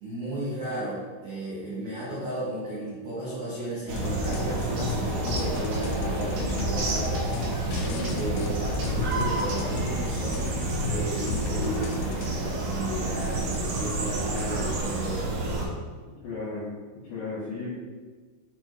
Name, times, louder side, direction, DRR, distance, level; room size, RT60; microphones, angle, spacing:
voice 1, 0.0-7.3 7.6-10.5 10.9-15.3, right 1 dB, 90° right, -9 dB, 1.6 m, -34 dB
sound 1, 3.9-12.3, left 3 dB, 90° left, 2.4 m, -34 dB
sound 2, 3.9-15.6, right 2 dB, 70° right, 2.8 m, -29 dB
voice 2, 16.2-16.7 16.9-17.7, left 3 dB, 70° left, -8 dB, 3.0 m, -34 dB
6.8 x 4.6 x 3.0 m, 1.4 s
omnidirectional pair, 5.4 m